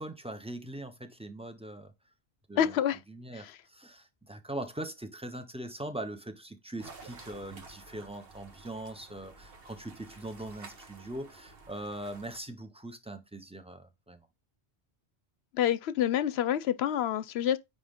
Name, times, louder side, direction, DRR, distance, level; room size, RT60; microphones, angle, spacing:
voice 1, 0.0-1.9 2.5-2.8 3.1-14.3, right 1 dB, 5° right, 0.8 m, -41 dB
voice 2, 2.6-3.0 15.5-17.6, left 10 dB, 70° left, 0.8 m, -27 dB
sound 1, 6.8-12.4, right 3 dB, 55° right, 1.5 m, -51 dB
9.4 x 3.3 x 3.6 m
omnidirectional pair, 1.2 m